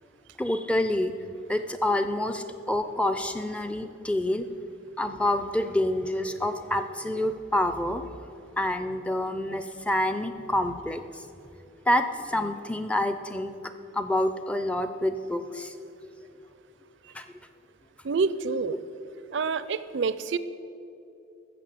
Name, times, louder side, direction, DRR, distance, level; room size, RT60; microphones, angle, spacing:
voice 1, 0.4-1.1 1.5-4.5 5.0-8.0 8.6-11.2 11.9-13.5 13.9-15.7 17.1-17.3, left 1 dB, 5° left, 9 dB, 0.4 m, -27 dB
voice 2, 18.0-18.8 19.3-20.4, right 4 dB, 60° right, 15 dB, 0.4 m, -27 dB
13.5 x 7.1 x 7.6 m, 2.8 s
head